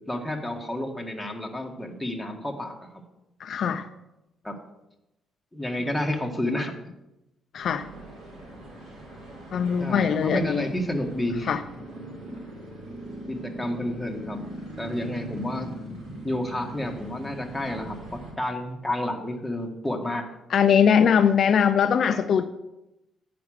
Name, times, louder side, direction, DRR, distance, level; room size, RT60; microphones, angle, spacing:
voice 1, 0.1-2.7 4.4-4.6 5.5-6.8 9.8-11.5 13.3-14.4 14.8-15.7 16.2-20.3, left 1 dB, 5° left, 1 dB, 1.6 m, -30 dB
voice 2, 3.4-3.9 7.5-7.9 9.5-10.7 11.5-11.6 20.5-22.4, left 7 dB, 60° left, 9 dB, 0.5 m, -21 dB
sound 1, 7.6-18.3, right 1 dB, 70° right, 4.4 m, -40 dB
9.2 x 6.1 x 6.4 m, 0.92 s
cardioid pair, 90°, 0 cm